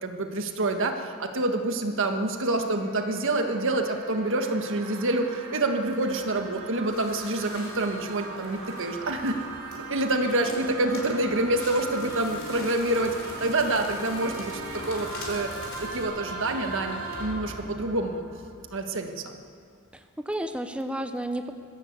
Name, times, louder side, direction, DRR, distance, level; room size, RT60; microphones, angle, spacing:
voice 1, 0.0-9.4 9.9-14.5 14.9-15.5 15.8-18.3 18.7-19.4, right 2 dB, 60° right, 5 dB, 1.7 m, -27 dB
sound 1, 2.2-19.1, right 3 dB, 85° right, 2.9 m, -39 dB
Crackle, 5.8-16.0, left 2 dB, 65° left, 4.6 m, -45 dB
voice 2, 19.9-21.5, right 1 dB, 5° right, 7 dB, 0.7 m, -32 dB
21.0 x 15.5 x 8.0 m, 2.2 s
head